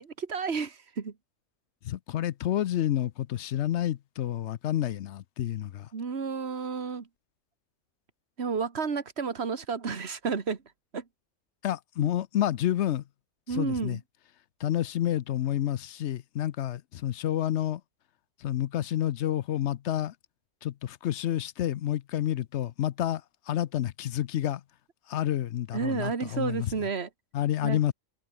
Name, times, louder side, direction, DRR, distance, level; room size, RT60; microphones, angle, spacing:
voice 1, 0.2-1.1 5.9-7.1 8.4-10.6 10.9-11.0 12.0-12.1 13.5-14.0 25.7-27.1 27.6-27.8, right 5 dB, 55° right, 2.0 m, -31 dB
voice 2, 1.8-5.9 11.6-13.0 13.5-14.0 14.6-17.8 18.4-20.1 20.6-23.2 23.5-24.6 25.1-26.7 27.3-27.9, left 12 dB, 65° left, 0.9 m, -29 dB
omnidirectional pair, 1.4 m